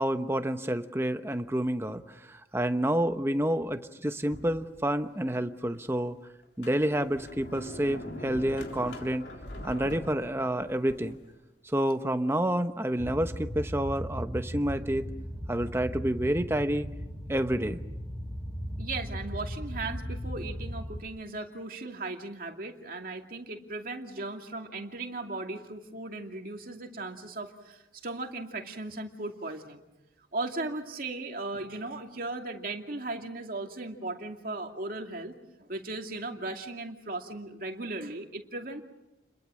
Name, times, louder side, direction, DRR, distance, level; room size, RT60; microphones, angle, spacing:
voice 1, 0.0-6.2 6.6-9.2 9.6-11.2 11.7-15.1 15.5-16.9 17.3-17.8, right 1 dB, 15° right, 8 dB, 1.0 m, -29 dB
Sliding door, 4.3-5.2 5.7-5.8 6.4-11.3, left 1 dB, 70° left, 3.5 m, -42 dB
sound 1, 13.0-21.0, equal, 15° left, 4.0 m, -37 dB
voice 2, 18.8-29.8 30.3-38.8, right 2 dB, 50° right, 3 dB, 2.5 m, -37 dB
30.0 x 22.0 x 6.4 m, 0.98 s
head